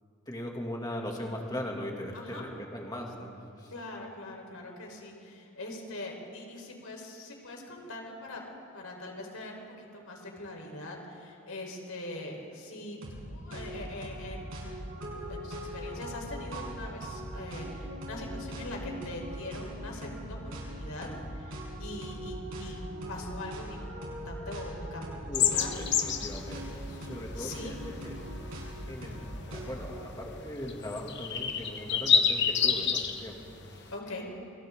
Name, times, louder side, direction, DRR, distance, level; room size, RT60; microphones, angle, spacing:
voice 1, 0.3-3.3 3.6-3.7 25.3-26.6 26.9-28.1 28.9-29.2 29.5-33.4 33.7-33.9, left 1 dB, 20° left, -1 dB, 2.7 m, -39 dB
voice 2, 2.1-2.4 3.7-8.4 8.7-22.8 23.1-24.0 24.2-25.7 27.4-27.8 33.9-34.3, left 2 dB, 75° left, 0 dB, 4.6 m, -42 dB
sound 1, 13.0-13.2 13.5-30.0, equal, 65° right, 6.7 m, -40 dB
sound 2, 25.3-34.0, left 7 dB, 50° left, 1.2 m, -30 dB
28.5 x 25.5 x 3.9 m, 2.5 s
head